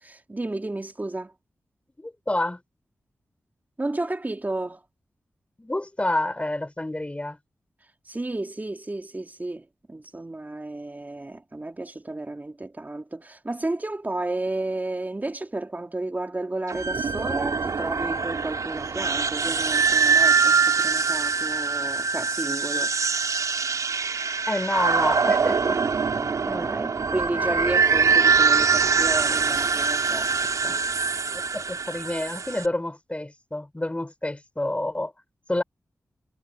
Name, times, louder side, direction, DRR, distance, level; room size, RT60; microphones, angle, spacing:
voice 1, 0.1-1.3 3.8-4.8 8.1-22.9 26.1-30.8, right 2 dB, 30° right, 2.9 m, -32 dB
voice 2, 2.0-2.6 5.6-7.4 24.5-25.8 26.4-26.7 30.6-30.7 31.3-35.1 35.5-35.6, left 1 dB, 20° left, 5.1 m, -29 dB
sound 1, 16.7-32.7, right 5 dB, 80° right, 4.6 m, -23 dB
cardioid pair, 45°, 6 cm